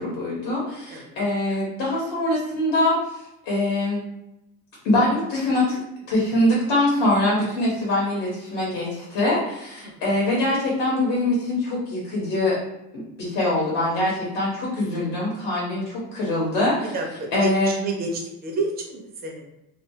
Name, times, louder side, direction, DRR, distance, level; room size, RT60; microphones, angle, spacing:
voice 1, 0.0-4.0 4.8-5.8 6.1-12.6 12.9-16.9 17.3-17.7, left 1 dB, 70° left, -5 dB, 1.0 m, -23 dB
voice 2, 16.9-19.4, right 3 dB, 30° right, 1 dB, 0.4 m, -30 dB
2.3 x 2.3 x 2.7 m, 0.88 s
cardioid pair, 160°, 36 cm